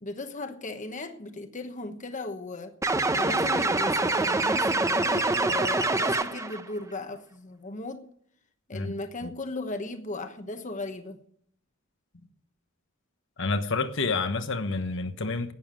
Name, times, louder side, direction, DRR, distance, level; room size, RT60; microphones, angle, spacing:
voice 1, 0.0-2.7 3.1-8.0 8.7-11.2, left 2 dB, 40° left, 1.1 m, -37 dB
sound 1, 2.8-6.6, right 2 dB, 15° right, 0.8 m, -25 dB
voice 2, 13.4-15.5, left 3 dB, 65° left, 1.2 m, -29 dB
11.5 x 9.5 x 8.9 m
head